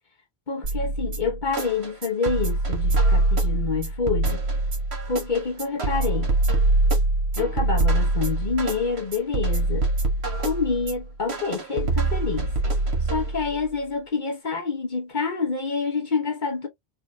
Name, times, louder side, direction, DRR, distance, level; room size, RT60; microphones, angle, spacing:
voice 1, 0.5-4.4 5.1-6.3 7.3-9.9 10.4-12.5 13.1-16.7, left 4 dB, 50° left, 1.2 m, -27 dB
sound 1, 0.6-13.6, right 2 dB, 80° right, 1.8 m, -24 dB
5.8 x 2.8 x 2.7 m
omnidirectional pair, 1.1 m